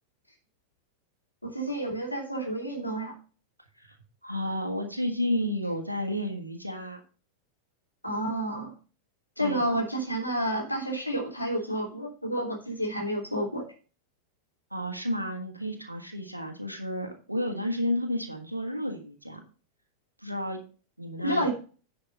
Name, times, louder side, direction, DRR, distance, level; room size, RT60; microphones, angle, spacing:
voice 1, 1.4-3.1 8.0-8.7 9.4-13.6 21.2-21.5, right 1 dB, 90° left, 1 dB, 3.0 m, -30 dB
voice 2, 4.2-7.0 9.4-9.7 14.7-19.4 20.2-20.6 21.0-21.5, left 1 dB, 85° right, 4 dB, 1.4 m, -31 dB
10.0 x 5.2 x 5.3 m, 0.37 s
figure-of-eight pair, 90°, 0 cm